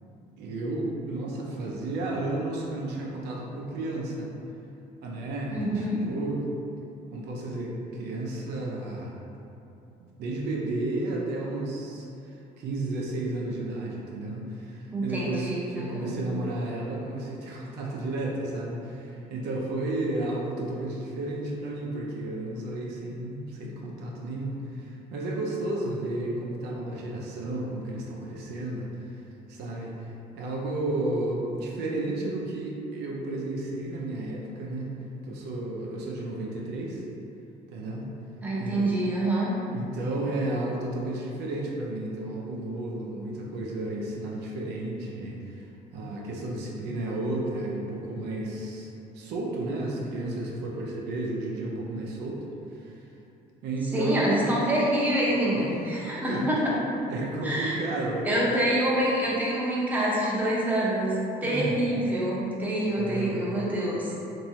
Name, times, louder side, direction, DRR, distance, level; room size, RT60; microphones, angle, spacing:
voice 1, 0.4-4.3 5.0-6.4 7.1-9.1 10.2-12.1 12.6-29.2 29.5-35.0 35.2-37.1 37.7-38.1 38.6-38.9 39.7-52.4 52.7-53.1 53.6-54.3 55.5-55.6 56.3-56.6 57.1-58.3 61.4-61.9 63.0-63.5, right 2 dB, 80° right, -2 dB, 0.5 m, -32 dB
voice 2, 5.5-6.0 14.9-16.1 38.4-39.5 53.9-56.6 57.4-57.8 58.2-64.2, right 1 dB, 10° right, -7 dB, 0.7 m, -26 dB
3.0 x 2.6 x 2.7 m, 2.8 s
cardioid pair, 110°, 17 cm